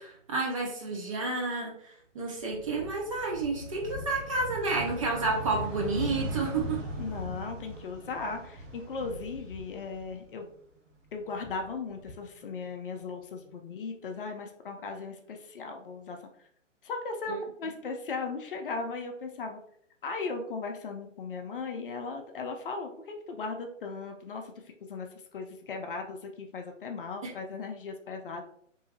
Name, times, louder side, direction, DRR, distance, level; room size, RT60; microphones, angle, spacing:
voice 1, 0.0-6.8 17.3-17.4 27.2-27.3, right 3 dB, 30° right, -1 dB, 0.5 m, -31 dB
sound 1, 2.4-10.5 10.9-12.0, right 1 dB, 75° right, 1.2 m, -39 dB
voice 2, 7.0-10.5 11.1-16.2 16.8-19.6 20.0-28.4, left 4 dB, 45° left, 4 dB, 0.5 m, -37 dB
3.0 x 2.7 x 2.7 m, 0.66 s
figure-of-eight pair, 130°, 38 cm